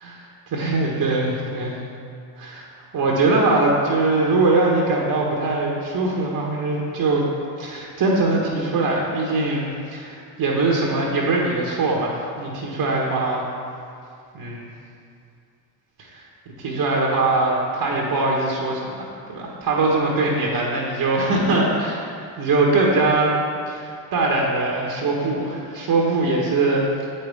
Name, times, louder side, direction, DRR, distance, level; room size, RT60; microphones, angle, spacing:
voice 1, 0.5-1.8 2.4-2.7 2.9-7.3 7.6-13.5 14.3-14.6 16.0-16.2 16.6-23.3 23.7-26.8, right 2 dB, 55° right, -2 dB, 1.3 m, -22 dB
7.6 x 5.5 x 3.5 m, 2.4 s
supercardioid pair, 65°, 43 cm